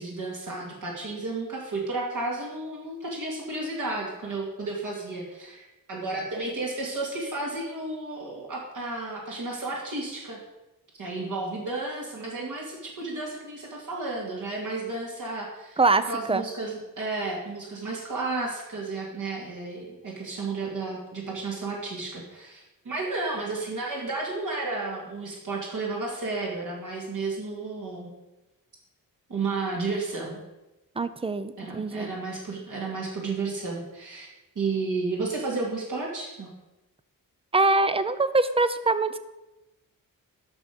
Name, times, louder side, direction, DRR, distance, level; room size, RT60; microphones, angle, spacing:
voice 1, 0.0-10.4 10.9-15.8 16.1-28.1 29.3-30.4 31.6-34.3 34.5-36.5, right 3 dB, 60° right, -3 dB, 2.5 m, -32 dB
voice 2, 15.8-16.4 31.0-32.1 37.5-39.2, right 3 dB, 15° right, 12 dB, 0.6 m, -24 dB
12.0 x 6.2 x 5.2 m, 1.0 s
wide cardioid pair, 125°, 35 cm